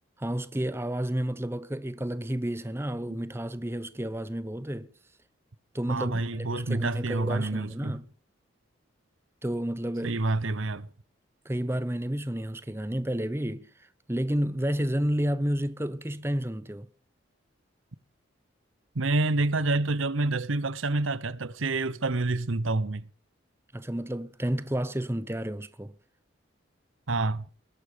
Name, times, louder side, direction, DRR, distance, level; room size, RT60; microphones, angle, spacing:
voice 1, 0.2-4.9 5.7-8.1 9.4-10.2 11.4-16.9 23.7-25.9, right 1 dB, 10° right, 0.8 m, -31 dB
voice 2, 5.9-8.0 10.0-10.9 18.9-23.0 27.1-27.4, right 2 dB, 85° right, 1.0 m, -28 dB
20.5 x 11.5 x 5.2 m
head